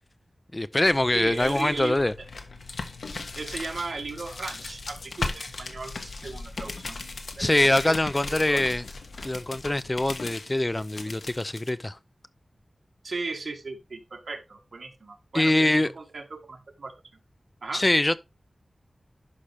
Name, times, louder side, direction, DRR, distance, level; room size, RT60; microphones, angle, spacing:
voice 1, 0.5-2.1 7.4-8.8 9.2-12.0 15.3-15.9 17.7-18.2, left 1 dB, 25° left, 0.5 m, -23 dB
sound 1, 0.8-11.7, left 3 dB, 90° left, 1.4 m, -38 dB
voice 2, 1.1-2.3 3.3-8.6 13.0-16.9 17.6-17.8, right 3 dB, 70° right, 1.7 m, -37 dB
11.5 x 5.5 x 3.4 m
wide cardioid pair, 85°, 0 cm